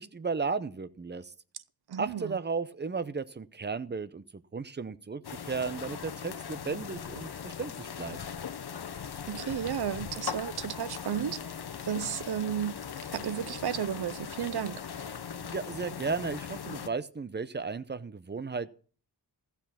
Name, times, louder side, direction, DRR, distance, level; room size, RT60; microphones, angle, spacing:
voice 1, 0.0-1.3 2.0-8.2 15.4-18.7, right 4 dB, 25° right, 0.6 m, -35 dB
voice 2, 1.9-2.4 9.3-11.5 11.9-12.8 13.1-14.8, right 9 dB, 70° right, 0.6 m, -33 dB
sound 1, 5.2-16.9, left 7 dB, 70° left, 1.0 m, -40 dB
15.0 x 7.0 x 5.7 m
wide cardioid pair, 115°, 40 cm